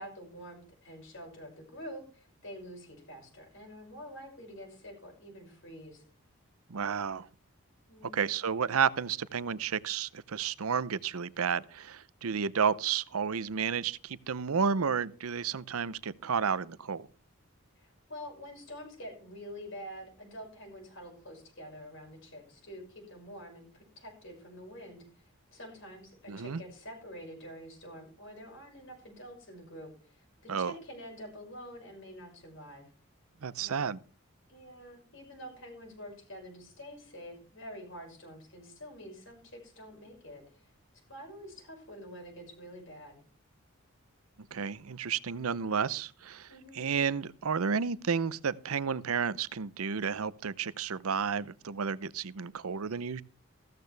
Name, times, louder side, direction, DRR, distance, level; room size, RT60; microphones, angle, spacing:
voice 1, 0.0-6.0 7.9-8.3 17.8-32.9 33.6-33.9 34.5-40.7 41.1-43.2 46.5-46.9, equal, 65° left, 6.0 m, -47 dB
voice 2, 6.7-7.3 8.1-17.1 26.3-26.6 30.5-30.7 33.4-34.0 44.5-46.5 46.7-53.2, right 6 dB, 85° right, 0.6 m, -31 dB
15.0 x 13.5 x 3.4 m
head